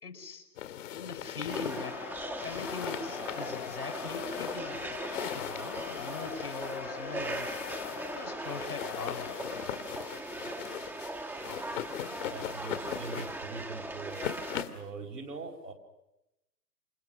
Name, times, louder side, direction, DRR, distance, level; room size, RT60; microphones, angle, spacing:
voice 1, 0.0-0.5 0.9-2.0 2.4-7.6 8.1-9.4, left 4 dB, 85° left, 5 dB, 5.8 m, -41 dB
sound 1, 0.6-14.9, left 11 dB, 55° left, 2.1 m, -40 dB
Crowd, 1.5-9.6, left 14 dB, 25° left, 0.9 m, -43 dB
sound 2, 1.5-14.6, right 2 dB, 5° right, 1.2 m, -40 dB
voice 2, 12.3-14.2 14.7-15.7, right 4 dB, 85° right, 1 dB, 5.1 m, -42 dB
29.5 x 27.5 x 6.5 m, 0.95 s
figure-of-eight pair, 120°, 45 cm